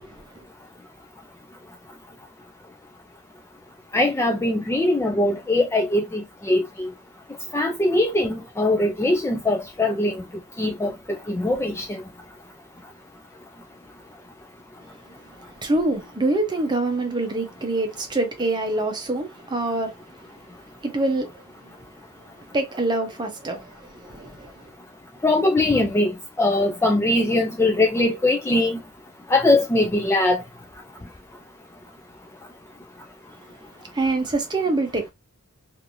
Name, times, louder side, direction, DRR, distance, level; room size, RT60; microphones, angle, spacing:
voice 1, 3.9-6.9 7.5-10.2 10.6-12.0 25.2-28.8 29.3-30.4, left 2 dB, 10° left, 0.3 m, -21 dB
voice 2, 15.6-19.9 20.8-21.4 22.5-24.5 33.9-35.1, right 2 dB, 20° right, 0.7 m, -25 dB
3.2 x 2.6 x 2.5 m
head